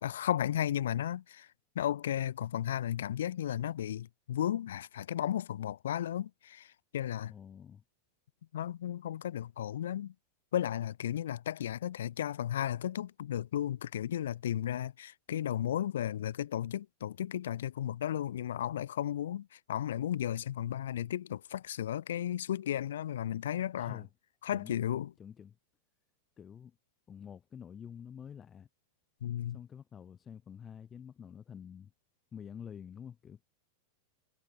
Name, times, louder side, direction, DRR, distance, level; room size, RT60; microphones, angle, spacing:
voice 1, 0.0-1.5 1.8-7.3 8.5-10.1 10.5-24.0 24.4-25.1 29.2-29.6, left 11 dB, 60° left, 0.5 m, -34 dB
voice 2, 7.3-7.8 23.8-24.1 24.5-24.8 25.2-25.6 26.4-26.8 27.1-28.7 29.5-31.9 32.3-33.4, left 8 dB, 20° left, 4.7 m, -48 dB
figure-of-eight pair, 90°, 0 cm